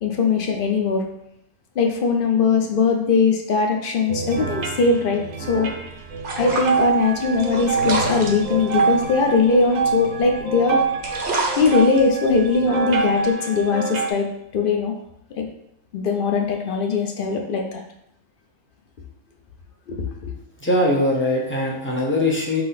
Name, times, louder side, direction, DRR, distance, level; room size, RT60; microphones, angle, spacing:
voice 1, 0.0-1.0 1.8-5.7 6.4-10.8 11.6-14.3 14.5-14.9 15.4-15.5 15.9-17.8 19.9-20.3, left 4 dB, 50° left, 2 dB, 0.7 m, -20 dB
sound 1, 4.1-14.1, right 4 dB, 70° right, 1.0 m, -26 dB
sound 2, 5.6-10.5 10.8-13.3, right 3 dB, 45° right, 0.8 m, -30 dB
voice 2, 20.6-22.6, left 1 dB, 15° left, -2 dB, 0.5 m, -21 dB
5.6 x 2.2 x 4.0 m, 0.78 s
omnidirectional pair, 1.5 m